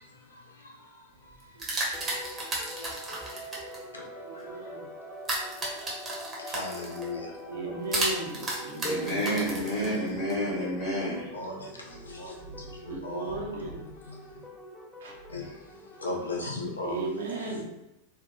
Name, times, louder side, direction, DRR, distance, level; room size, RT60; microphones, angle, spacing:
sound 1, 1.3-3.8 5.2-7.1 7.9-10.3, right 2 dB, 20° right, 0.7 m, -33 dB
voice 1, 1.5-2.1 4.2-4.9 7.5-10.3 11.9-13.9 15.0-15.5 16.7-17.6, right 2 dB, 60° right, -1 dB, 0.6 m, -38 dB
sound 2, 1.9-16.3, equal, 15° left, 0.4 m, -45 dB
voice 2, 6.5-7.2 11.3-11.5 12.2-12.3 13.0-13.3 15.3-15.4 16.0-17.0, left 3 dB, 75° left, 0 dB, 0.5 m, -34 dB
voice 3, 8.8-11.3, equal, 35° left, -6 dB, 0.8 m, -29 dB
2.6 x 2.1 x 2.4 m, 0.89 s
figure-of-eight pair, 90°, 0 cm